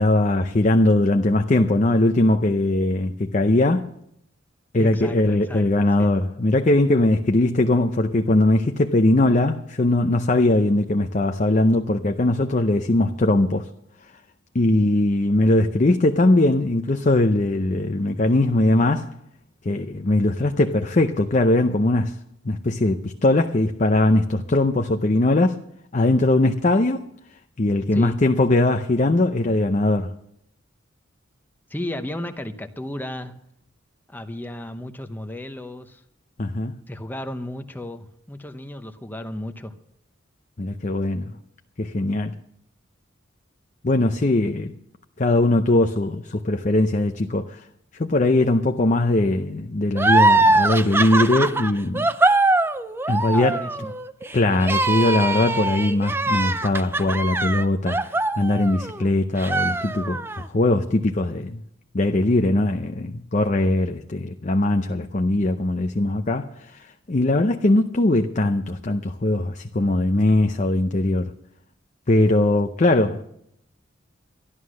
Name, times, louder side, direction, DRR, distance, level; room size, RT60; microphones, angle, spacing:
voice 1, 0.0-3.9 4.7-13.7 14.5-19.2 19.6-22.2 22.4-25.6 25.9-27.0 27.6-30.1 36.4-36.7 40.6-41.4 41.8-42.4 43.8-44.8 45.2-47.7 47.9-52.1 53.1-53.6 54.3-61.6 61.9-71.3 72.1-73.2, left 2 dB, 40° left, 0.6 m, -20 dB
voice 2, 4.8-6.1 27.9-28.2 31.7-33.3 34.1-36.0 36.9-39.7 53.3-53.9, left 1 dB, 10° left, 0.8 m, -34 dB
sound 1, 50.0-59.0 59.4-60.4, right 2 dB, 10° right, 0.5 m, -22 dB
13.0 x 11.5 x 6.3 m
head